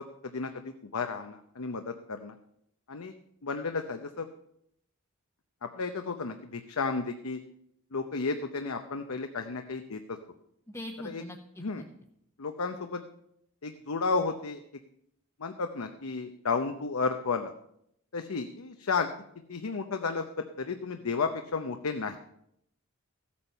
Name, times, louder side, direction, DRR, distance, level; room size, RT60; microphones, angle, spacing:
voice 1, 0.9-2.3 2.9-3.1 3.4-4.3 5.8-7.4 7.9-10.0 11.0-11.2 11.6-11.8 12.4-13.0 13.6-14.6 15.4-17.5 18.1-19.1 19.5-20.2 20.6-22.2, left 4 dB, 75° left, 6 dB, 0.8 m, -32 dB
voice 2, 10.7-11.9, left 1 dB, 15° left, 1 dB, 0.9 m, -42 dB
14.5 x 8.5 x 5.5 m, 0.74 s
head